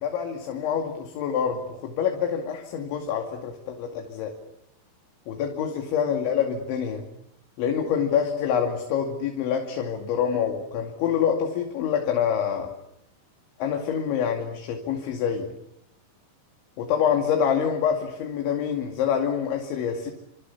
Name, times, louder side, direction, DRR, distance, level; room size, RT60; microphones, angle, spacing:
voice 1, 0.0-4.3 5.3-7.0 7.6-12.7 13.6-15.5 16.8-20.1, left 8 dB, 70° left, 3 dB, 4.6 m, -26 dB
29.0 x 27.5 x 7.2 m, 0.78 s
omnidirectional pair, 5.8 m